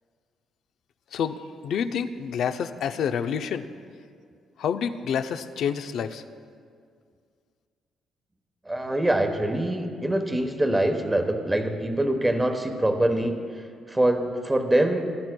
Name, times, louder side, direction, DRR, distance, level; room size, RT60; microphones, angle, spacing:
voice 1, 1.1-3.7 4.6-6.2, left 7 dB, 70° left, 9 dB, 0.5 m, -28 dB
voice 2, 8.7-13.3 13.9-15.0, right 1 dB, 15° right, 5 dB, 1.0 m, -24 dB
19.5 x 10.5 x 2.2 m, 2.2 s
cardioid pair, 90°, 0 cm